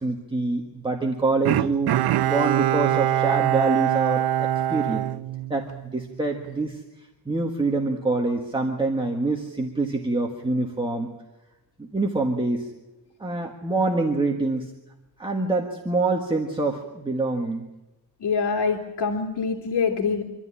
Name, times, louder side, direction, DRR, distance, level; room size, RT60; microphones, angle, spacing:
voice 1, 0.0-1.9 2.2-5.0 5.5-5.7 5.9-6.8 7.2-11.1 11.8-12.7 13.2-14.7 15.2-17.7, right 3 dB, 10° right, 1 dB, 1.6 m, -25 dB
Bowed string instrument, 1.5-6.0 6.4-6.5, right 12 dB, 70° right, 0.7 m, -23 dB
voice 2, 18.2-20.2, left 5 dB, 85° left, 1 dB, 2.6 m, -25 dB
25.5 x 13.5 x 9.9 m, 1.0 s
wide cardioid pair, 165°, 40 cm